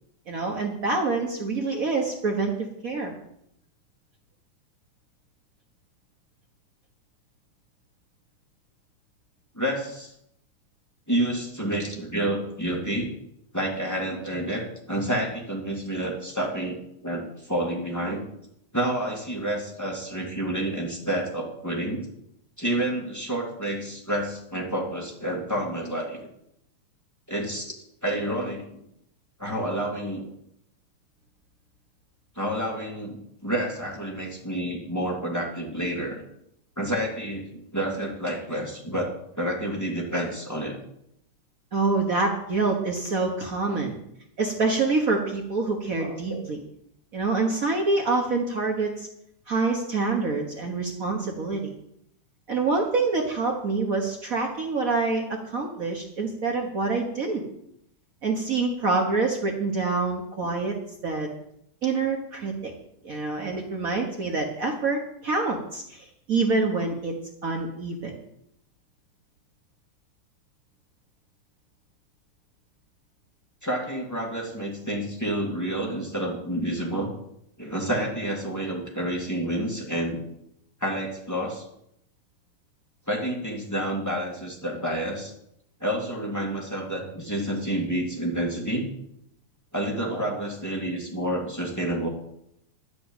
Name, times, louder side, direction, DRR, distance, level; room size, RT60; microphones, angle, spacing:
voice 1, 0.3-3.1 41.7-44.0 44.4-46.6 47.1-49.1 49.5-51.7 52.5-57.4 58.2-60.7 61.0-61.3 61.8-62.7 63.0-67.1 67.4-68.1, right 3 dB, 85° right, 2 dB, 0.7 m, -26 dB
voice 2, 9.5-10.1 11.1-13.1 13.5-16.8 17.0-18.3 18.7-22.1 22.6-26.2 27.3-27.7 28.0-28.8 29.4-30.2 32.4-36.2 36.8-37.4 37.7-40.8 46.0-46.4 73.6-77.1 77.6-80.2 80.8-81.7 83.1-85.3 85.8-88.9 89.7-92.1, right 1 dB, 5° left, -2 dB, 2.0 m, -29 dB
11.5 x 6.1 x 9.0 m, 0.76 s
omnidirectional pair, 3.5 m